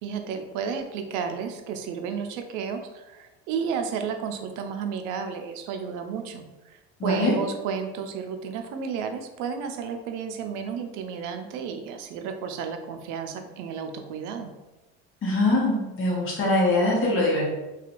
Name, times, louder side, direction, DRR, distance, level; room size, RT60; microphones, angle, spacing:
voice 1, 0.0-14.5, right 6 dB, 65° right, 5 dB, 0.5 m, -32 dB
voice 2, 7.0-7.3 15.2-17.5, left 2 dB, 40° left, -4 dB, 0.9 m, -23 dB
2.7 x 2.4 x 2.5 m, 1.1 s
supercardioid pair, 90°, 33 cm